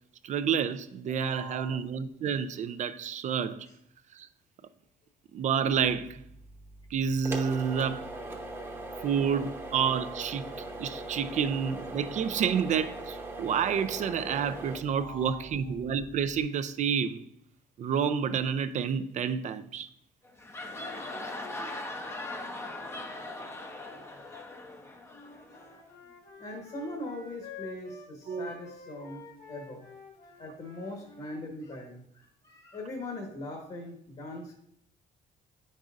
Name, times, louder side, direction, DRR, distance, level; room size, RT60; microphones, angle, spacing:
voice 1, 0.2-3.7 4.1-4.3 5.3-6.2 6.9-8.1 9.0-10.5 10.8-17.2 17.8-19.9 28.3-28.5, right 7 dB, 45° right, 0.4 m, -29 dB
voice 2, 1.1-1.8 8.9-9.0 10.7-11.4 14.8-15.7 24.3-24.8 25.5-25.7 26.4-29.9 30.3-34.5, left 1 dB, 35° left, 1.3 m, -42 dB
sound 1, 5.7-16.4, right 2 dB, 15° right, 0.9 m, -41 dB
sound 2, 20.2-25.8, left 2 dB, 15° left, 0.6 m, -40 dB
Wind instrument woodwind instrument, 25.1-31.4, left 6 dB, 70° left, 1.3 m, -49 dB
8.8 x 5.4 x 2.5 m
cardioid pair, 110°, 17 cm